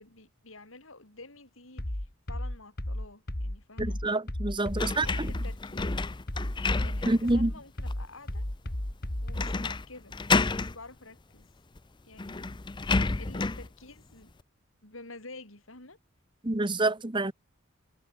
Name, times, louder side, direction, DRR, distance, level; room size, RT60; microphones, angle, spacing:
voice 1, 0.0-4.0 4.7-6.1 6.7-8.5 9.2-10.1 10.5-11.5 12.0-12.6 13.2-14.3 14.8-16.0, left 3 dB, 90° left, 7.0 m, -49 dB
sound 1, 1.8-9.6, left 1 dB, 50° left, 2.5 m, -34 dB
voice 2, 3.8-5.1 7.0-7.5 16.4-17.3, right 2 dB, 25° right, 1.2 m, -27 dB
sound 2, 4.8-7.3 7.9-8.0 9.4-9.8 10.1-10.7 11.8-11.9 12.2-13.7, left 3 dB, 25° left, 0.6 m, -30 dB
head